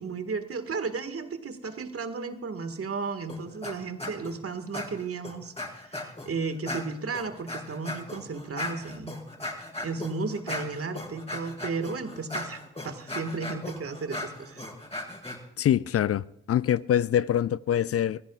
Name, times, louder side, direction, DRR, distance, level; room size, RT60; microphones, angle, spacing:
voice 1, 0.0-9.2 9.8-14.7, right 4 dB, 50° right, 1.8 m, -34 dB
sound 1, 3.3-3.7 4.0-4.3 4.7-6.3 6.7-15.4, left 1 dB, 20° left, 5.7 m, -37 dB
voice 2, 15.6-18.2, left 10 dB, 50° left, 0.5 m, -24 dB
25.5 x 15.5 x 2.4 m
hypercardioid pair, 40°, 31 cm